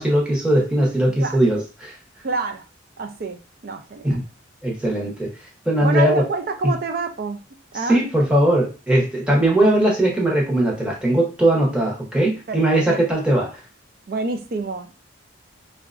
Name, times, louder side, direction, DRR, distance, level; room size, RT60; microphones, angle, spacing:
voice 1, 0.0-1.9 4.0-4.2 4.6-5.3 5.7-6.2 7.9-13.5, right 1 dB, 5° right, -3 dB, 0.7 m, -19 dB
voice 2, 1.1-1.4 2.2-2.6 3.0-4.2 4.8-5.1 5.8-7.4 7.7-8.0 9.5-9.6 12.5-13.0 14.1-14.9, right 3 dB, 45° right, 7 dB, 0.4 m, -28 dB
4.5 x 2.1 x 2.4 m, 0.33 s
head